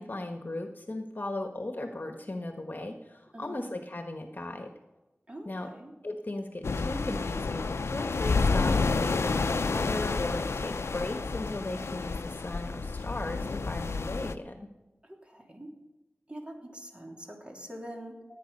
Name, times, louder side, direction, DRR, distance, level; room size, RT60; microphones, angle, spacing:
voice 1, 0.0-4.7 5.5-5.7 6.0-14.7, left 2 dB, 45° left, 4 dB, 1.4 m, -37 dB
voice 2, 3.3-3.7 5.3-5.9 15.0-15.7 16.3-18.2, right 1 dB, 25° right, 0 dB, 3.2 m, -44 dB
sound 1, 6.6-14.3, left 4 dB, 85° left, 0.6 m, -30 dB
18.0 x 9.0 x 5.4 m, 1.0 s
cardioid pair, 40°, 4 cm